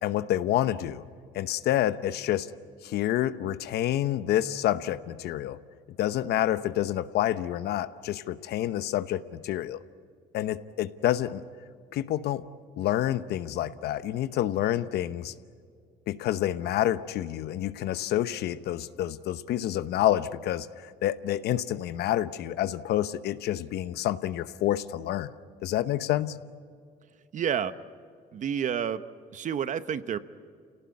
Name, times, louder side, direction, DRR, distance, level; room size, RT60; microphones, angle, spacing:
voice 1, 0.0-1.0 1.3-2.5 2.8-5.6 6.0-9.8 10.3-11.4 11.9-12.4 12.8-15.3 16.1-25.3 25.6-26.4, left 12 dB, 75° left, 13 dB, 0.9 m, -28 dB
voice 2, 27.3-27.7 28.3-29.0 29.3-30.2, right 8 dB, 45° right, 13 dB, 1.0 m, -29 dB
28.0 x 18.0 x 9.7 m, 2.2 s
cardioid pair, 110°, 17 cm